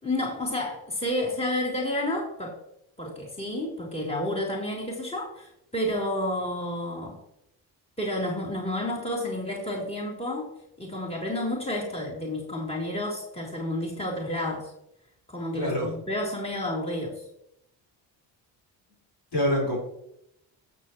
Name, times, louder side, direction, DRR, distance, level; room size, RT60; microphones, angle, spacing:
voice 1, 0.0-2.5 3.0-7.2 8.0-10.5 10.8-14.7 15.3-17.2, left 1 dB, 10° left, -3 dB, 3.5 m, -30 dB
voice 2, 15.5-15.9 19.3-19.8, equal, 55° left, -3 dB, 4.7 m, -25 dB
15.5 x 7.2 x 3.1 m, 0.79 s
hypercardioid pair, 50°, 49 cm